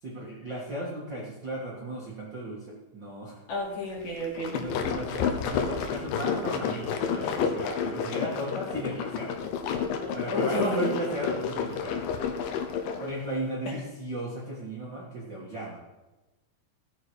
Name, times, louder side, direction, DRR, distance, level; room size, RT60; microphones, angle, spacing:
voice 1, 0.0-3.4 4.5-9.3 10.1-12.0 13.0-15.8, right 1 dB, 80° right, -4 dB, 1.0 m, -35 dB
voice 2, 3.5-4.6 10.3-10.9, equal, 50° left, -3 dB, 3.1 m, -32 dB
sound 1, 4.2-13.1, left 6 dB, 75° left, 2.2 m, -30 dB
17.0 x 6.6 x 4.7 m, 1.1 s
omnidirectional pair, 5.1 m